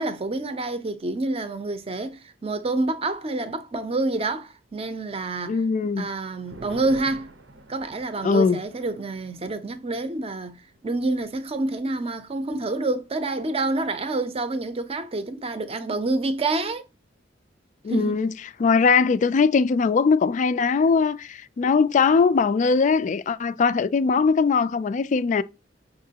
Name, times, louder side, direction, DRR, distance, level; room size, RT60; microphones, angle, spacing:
voice 1, 0.0-5.6 6.0-7.3 7.7-16.8 17.9-18.2, right 2 dB, 35° right, 0.6 m, -28 dB
voice 2, 5.5-6.1 8.2-8.6 17.8-18.3 18.6-25.4, left 5 dB, 40° left, 0.3 m, -20 dB
sound 1, 5.9-12.8 13.1-13.2 13.6-14.1, right 2 dB, 90° right, 0.8 m, -48 dB
5.7 x 3.0 x 2.8 m
head